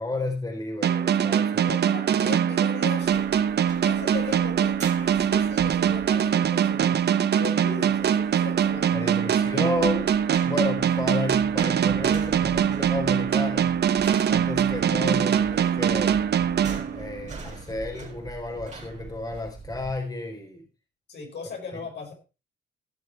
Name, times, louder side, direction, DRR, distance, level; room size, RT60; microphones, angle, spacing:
voice 1, 0.0-1.8 8.9-13.7 14.3-16.2 16.9-20.6, left 2 dB, 20° left, 3 dB, 4.0 m, -32 dB
sound 1, 0.8-17.4, right 9 dB, 55° right, 1.0 m, -23 dB
voice 2, 1.6-3.3 3.8-9.6 21.1-22.1, left 4 dB, 60° left, 2 dB, 5.1 m, -38 dB
sound 2, 2.9-19.9, right 3 dB, 35° right, 4.4 m, -43 dB
17.0 x 6.7 x 4.5 m, 0.31 s
cardioid pair, 90°, 20 cm